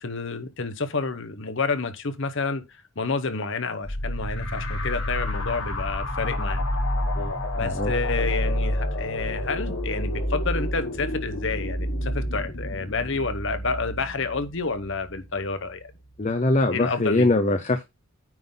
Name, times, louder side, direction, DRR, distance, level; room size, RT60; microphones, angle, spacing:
voice 1, 0.0-2.6 3.0-6.6 7.5-15.9 16.7-17.3, left 4 dB, 55° left, 1.0 m, -29 dB
sound 1, 3.8-15.2, left 1 dB, 70° left, 3.6 m, -29 dB
voice 2, 7.6-7.9 16.2-17.8, left 2 dB, 30° left, 0.6 m, -22 dB
9.4 x 3.8 x 5.6 m
head